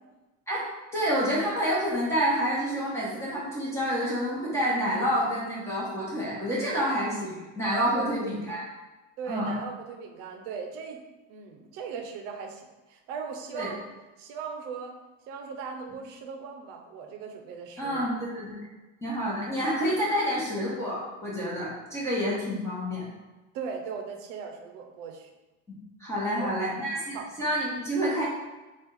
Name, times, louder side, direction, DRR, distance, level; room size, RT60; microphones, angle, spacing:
voice 1, 0.9-8.7 9.3-9.5 13.5-13.7 17.8-18.6 19.0-23.1 25.7-28.3, equal, 10° left, -8 dB, 1.0 m, -28 dB
voice 2, 9.2-11.0 11.3-13.8 14.2-15.0 15.3-18.1 23.5-25.3 26.3-26.6 27.1-27.3, right 6 dB, 70° right, 4 dB, 0.7 m, -38 dB
3.5 x 2.4 x 4.5 m, 1.1 s
cardioid pair, 155°, 32 cm